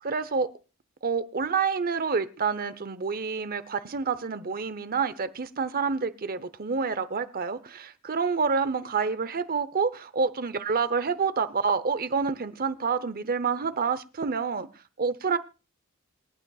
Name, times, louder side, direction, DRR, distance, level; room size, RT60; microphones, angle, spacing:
voice 1, 0.0-0.5 1.0-14.7 15.0-15.4, right 5 dB, 45° right, 0.8 m, -28 dB
26.5 x 9.0 x 2.4 m
head